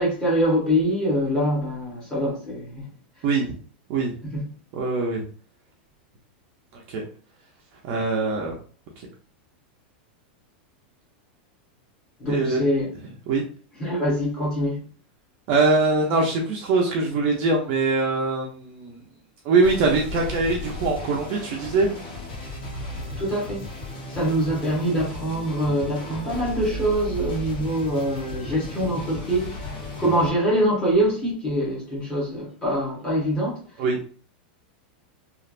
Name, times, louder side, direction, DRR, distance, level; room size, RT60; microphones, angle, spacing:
voice 1, 0.0-2.9 4.3-4.4 12.2-12.9 13.8-14.8 23.2-23.7 24.1-29.6 30.0-33.6, equal, 15° left, 1.2 m, -24 dB
voice 2, 3.2-3.5 3.9-4.2 4.7-5.3 6.7-7.0 7.8-8.5 12.3-12.6 13.3-13.4 15.5-19.0 19.4-21.9 33.8-34.0, right 3 dB, 30° right, 0.5 m, -22 dB
sound 1, 19.6-30.3, left 1 dB, 55° left, 1.3 m, -35 dB
3.2 x 2.5 x 2.4 m
supercardioid pair, 175°, 5 cm